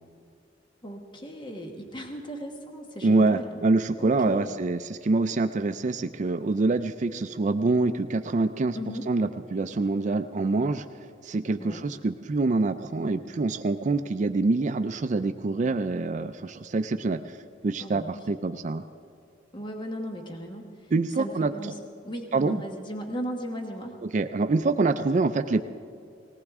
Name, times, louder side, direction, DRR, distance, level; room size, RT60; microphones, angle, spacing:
voice 1, 0.8-3.6 4.0-4.5 8.7-9.1 11.6-11.9 17.8-18.2 19.5-20.9 21.2-21.8 22.0-24.0, equal, 25° left, 2 dB, 1.2 m, -37 dB
voice 2, 3.0-8.8 9.1-10.8 11.2-18.8 20.9-21.5 22.3-22.6 24.1-25.6, right 3 dB, 40° right, 9 dB, 0.4 m, -25 dB
19.5 x 18.5 x 3.6 m, 2.4 s
head